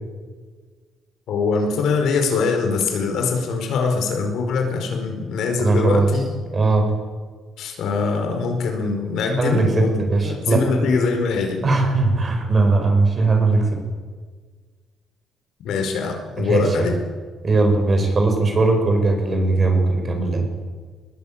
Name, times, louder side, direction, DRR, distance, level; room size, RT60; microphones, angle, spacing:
voice 1, 1.3-6.2 7.6-11.6 15.6-17.0, left 4 dB, 70° left, 4 dB, 4.8 m, -23 dB
voice 2, 5.6-6.1 6.5-6.9 9.3-10.6 11.6-13.8 16.4-16.9 17.4-20.5, right 3 dB, 30° right, 4 dB, 5.3 m, -19 dB
23.0 x 20.5 x 8.8 m, 1.5 s
cardioid pair, 165°, 0 cm